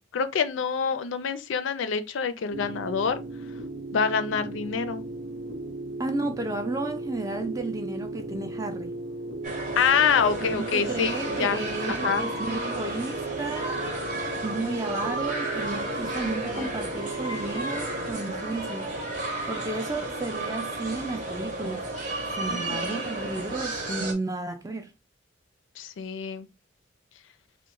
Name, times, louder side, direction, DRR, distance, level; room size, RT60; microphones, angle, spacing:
voice 1, 0.1-3.2 3.9-5.0 9.8-11.6 11.9-12.3 16.2-16.7 22.5-23.1 25.8-26.5, left 6 dB, 75° left, 0.4 m, -26 dB
sound 1, 2.5-18.1, right 2 dB, 85° right, 0.8 m, -37 dB
voice 2, 6.0-8.9 10.4-13.8 14.4-19.0 19.5-21.9 22.4-24.9, right 2 dB, 15° right, 0.3 m, -33 dB
sound 2, 9.4-24.1, right 2 dB, 40° right, 0.7 m, -32 dB
2.9 x 2.1 x 3.7 m
head